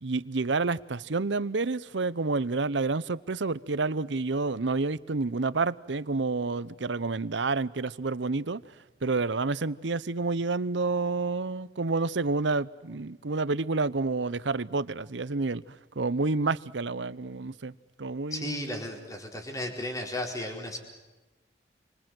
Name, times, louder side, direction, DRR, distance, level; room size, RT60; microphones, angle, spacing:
voice 1, 0.0-8.6 9.0-15.6 16.0-17.7 18.0-18.6, right 3 dB, 80° right, 0.8 m, -29 dB
voice 2, 18.3-20.8, left 1 dB, 20° left, 4.5 m, -34 dB
29.0 x 24.5 x 7.8 m
head